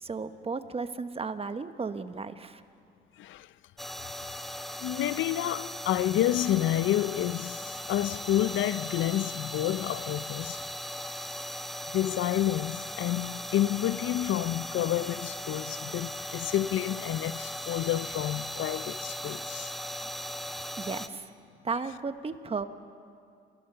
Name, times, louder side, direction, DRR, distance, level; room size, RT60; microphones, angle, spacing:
voice 1, 0.0-2.6 20.8-21.3 21.6-22.7, right 4 dB, 30° right, 1.1 m, -34 dB
voice 2, 3.2-3.5 4.8-10.6 11.9-19.7, left 13 dB, 80° left, 0.5 m, -29 dB
sound 1, 3.8-21.1, equal, ahead, 0.9 m, -38 dB
28.5 x 16.0 x 6.8 m
cardioid pair, 90°, 20 cm